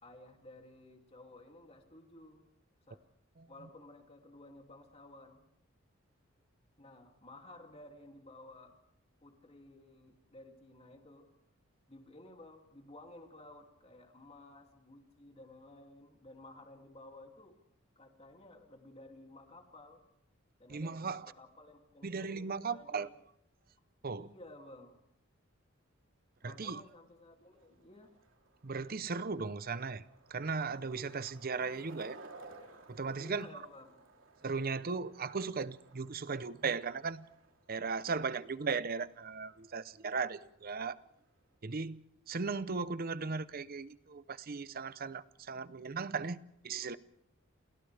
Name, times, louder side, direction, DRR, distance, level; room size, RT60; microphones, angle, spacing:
voice 1, 0.0-2.4 2.9-3.0 3.5-5.5 6.8-8.8 9.2-11.3 11.9-17.6 18.0-20.0 20.6-23.1 24.2-25.0 26.4-28.1 33.2-33.9, left 1 dB, 30° left, 2.7 m, -54 dB
voice 2, 20.7-21.3 22.0-23.1 24.0-24.3 26.4-26.8 28.6-30.0 30.3-32.2 32.9-33.5 34.4-37.3 37.7-41.0 41.6-47.0, right 4 dB, 45° right, 0.7 m, -37 dB
Skateboard, 26.4-41.6, right 3 dB, 70° right, 3.3 m, -59 dB
29.5 x 28.0 x 3.4 m
head